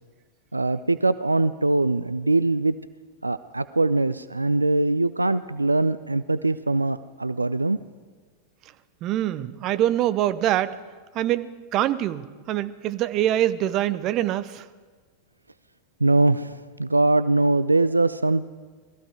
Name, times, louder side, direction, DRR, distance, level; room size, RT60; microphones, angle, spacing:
voice 1, 0.5-2.8 3.2-7.8 16.0-18.5, right 2 dB, 80° right, 15 dB, 0.4 m, -22 dB
voice 2, 9.0-10.8 11.1-14.6, right 12 dB, 35° right, 14 dB, 0.7 m, -24 dB
19.5 x 14.5 x 4.8 m, 1.4 s
figure-of-eight pair, 90°, 0 cm